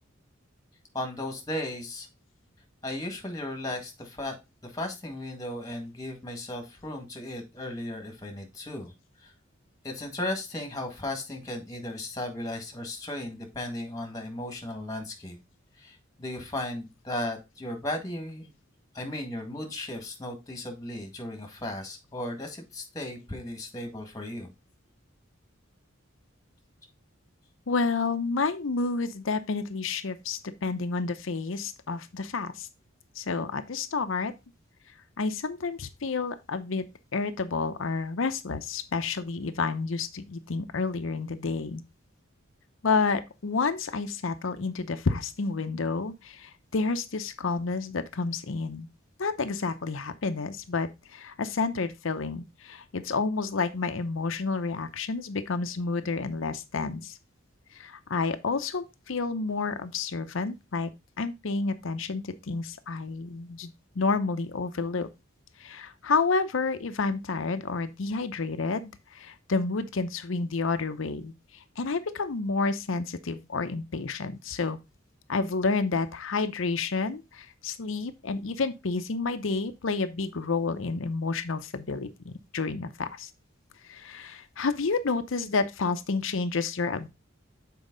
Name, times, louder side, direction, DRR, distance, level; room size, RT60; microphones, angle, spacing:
voice 1, 0.9-2.1 2.8-4.4 4.6-8.9 9.2-9.3 9.8-15.4 15.8-18.5 18.9-24.5, left 1 dB, 20° left, 1.8 m, -36 dB
voice 2, 27.7-32.7 33.2-34.3 35.2-41.8 42.8-48.9 49.2-57.2 57.7-60.9 61.2-65.1 65.6-71.3 71.8-74.8 75.3-83.3 83.8-87.1, left 4 dB, 70° left, 0.7 m, -30 dB
7.2 x 4.6 x 3.9 m
head